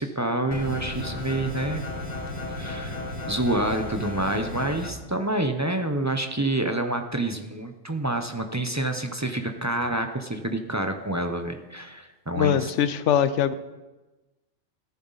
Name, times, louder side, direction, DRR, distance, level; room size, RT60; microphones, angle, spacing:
voice 1, 0.0-1.8 2.6-3.0 3.3-12.7, right 1 dB, 20° right, 5 dB, 0.5 m, -28 dB
sound 1, 0.5-4.9, left 2 dB, 35° left, 1.5 m, -34 dB
voice 2, 12.3-13.5, left 9 dB, 70° left, 13 dB, 1.0 m, -22 dB
13.5 x 11.0 x 4.0 m, 1.1 s
omnidirectional pair, 1.3 m